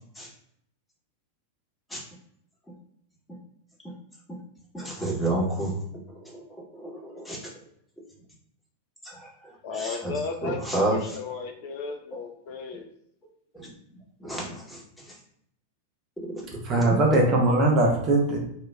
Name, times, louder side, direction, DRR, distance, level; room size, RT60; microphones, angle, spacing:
voice 1, 4.7-5.8 6.2-6.4 6.7-7.4 9.0-10.1 10.4-11.2 13.5-13.7 14.2-14.8 15.1-15.2, right 1 dB, 5° left, -4 dB, 1.0 m, -30 dB
voice 2, 9.6-10.6 10.9-12.9, left 5 dB, 50° left, 4 dB, 0.4 m, -34 dB
voice 3, 16.6-18.4, right 2 dB, 35° right, 0 dB, 0.7 m, -21 dB
2.3 x 2.2 x 3.2 m, 0.71 s
figure-of-eight pair, 90°, 0 cm